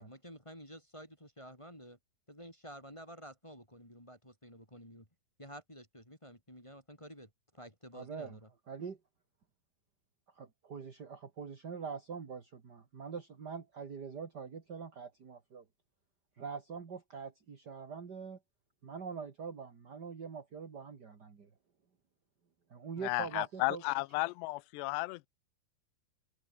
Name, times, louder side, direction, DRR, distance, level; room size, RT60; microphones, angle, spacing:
voice 1, 0.0-2.0 2.3-5.1 5.4-8.5, equal, 5° left, 3.7 m, -51 dB
voice 2, 7.9-8.4 8.7-9.0 10.4-15.6 16.4-18.4 18.8-21.5 22.7-23.8, right 6 dB, 35° right, 1.6 m, -44 dB
voice 3, 23.0-25.3, left 22 dB, 85° left, 2.8 m, -34 dB
omnidirectional pair, 4.9 m